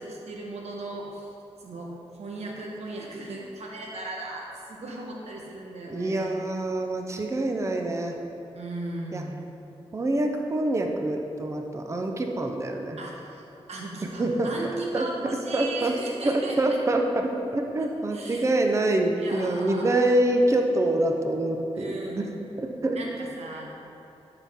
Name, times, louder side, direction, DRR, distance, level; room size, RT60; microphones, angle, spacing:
voice 1, 0.0-1.3 1.6-6.4 8.5-9.4 13.0-13.4 13.7-16.8 18.1-18.5 19.2-20.1 21.8-22.4 22.9-23.7, right 2 dB, 80° right, -2 dB, 1.2 m, -37 dB
voice 2, 5.9-8.2 9.1-9.2 9.9-13.0 14.1-14.5 14.9-15.1 15.5-15.9 16.2-22.3 22.6-23.2, right 1 dB, 25° right, 3 dB, 0.6 m, -25 dB
11.5 x 5.7 x 3.6 m, 2.9 s
wide cardioid pair, 150°, 11 cm